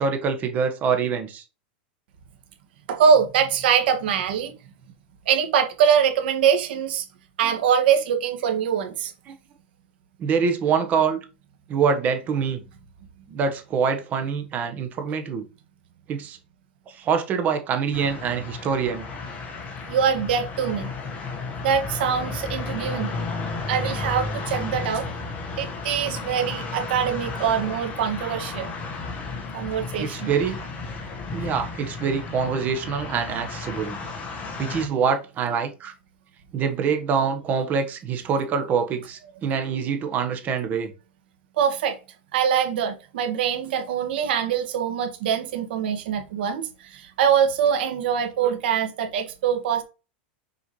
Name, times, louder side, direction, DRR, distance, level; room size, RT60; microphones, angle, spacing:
voice 1, 0.0-1.4 9.3-9.4 10.2-11.2 11.7-12.6 13.3-15.4 16.1-16.4 16.9-19.1 30.0-30.6 31.3-34.0 34.6-35.9 36.5-40.9 48.4-48.5, right 6 dB, 30° right, 1.4 m, -25 dB
voice 2, 2.9-4.5 5.3-7.1 7.4-9.1 19.9-20.9 21.6-23.1 23.7-25.1 25.5-28.7 29.5-30.3 41.6-42.0 42.3-49.8, right 7 dB, 70° right, 1.9 m, -23 dB
sound 1, 17.9-34.9, left 4 dB, 25° left, 1.5 m, -33 dB
6.8 x 4.6 x 3.2 m
supercardioid pair, 145°, 6 cm